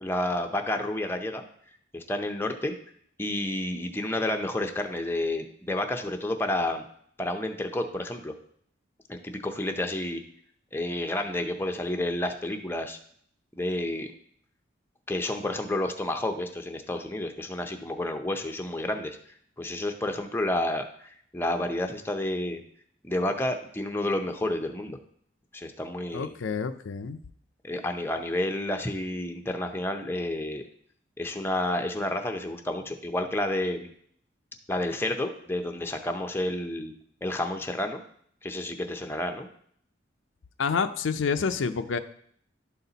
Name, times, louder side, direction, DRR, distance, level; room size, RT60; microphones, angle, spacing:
voice 1, 0.0-1.4 1.9-2.7 3.2-6.9 7.2-8.3 9.1-10.2 10.7-13.0 13.6-14.1 15.1-19.2 19.6-22.6 23.0-25.0 25.5-26.3 27.6-30.6 31.2-33.9 34.7-36.9 37.2-38.0 38.4-39.5, left 1 dB, 10° left, 5 dB, 0.6 m, -30 dB
voice 2, 26.1-27.2 40.6-42.0, left 5 dB, 90° left, 9 dB, 0.5 m, -28 dB
11.5 x 4.2 x 4.0 m, 0.64 s
head